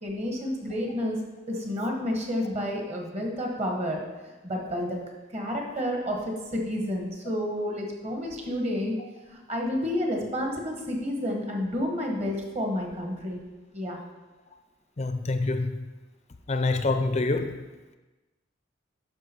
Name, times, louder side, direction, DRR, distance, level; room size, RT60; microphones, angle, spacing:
voice 1, 0.0-1.2 1.5-4.0 4.4-5.0 5.3-8.9 9.3-13.4 13.7-14.0, left 1 dB, 35° right, 1 dB, 1.6 m, -30 dB
voice 2, 15.0-15.7 16.5-17.6, left 2 dB, 35° left, 8 dB, 0.5 m, -26 dB
9.8 x 6.0 x 4.6 m, 1.2 s
head